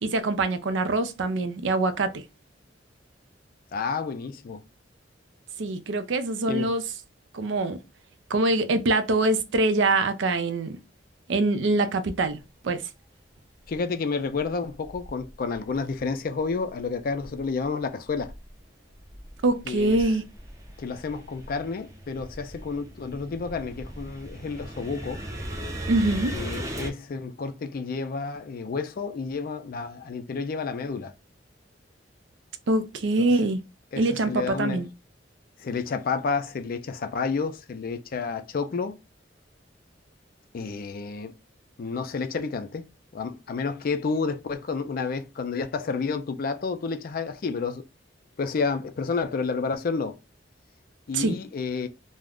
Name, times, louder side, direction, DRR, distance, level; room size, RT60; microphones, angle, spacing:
voice 1, 0.0-2.2 5.6-6.8 7.3-7.8 8.3-10.8 11.3-12.4 12.6-12.8 19.4-20.2 25.9-26.4 32.7-33.6 34.0-34.9 51.1-51.4, right 2 dB, 75° right, 0.4 m, -24 dB
voice 2, 3.7-4.6 6.5-6.7 13.7-18.3 19.7-20.0 20.8-25.2 26.3-31.1 33.2-33.3 33.9-34.8 35.6-39.0 40.5-41.4 41.8-42.9 43.1-47.8 48.4-50.2 51.1-51.9, left 4 dB, 50° left, 0.4 m, -30 dB
sound 1, 13.7-13.8 14.4-16.0 16.4-17.7 18.0-26.9, right 1 dB, 15° right, 0.5 m, -38 dB
2.4 x 2.0 x 3.5 m
head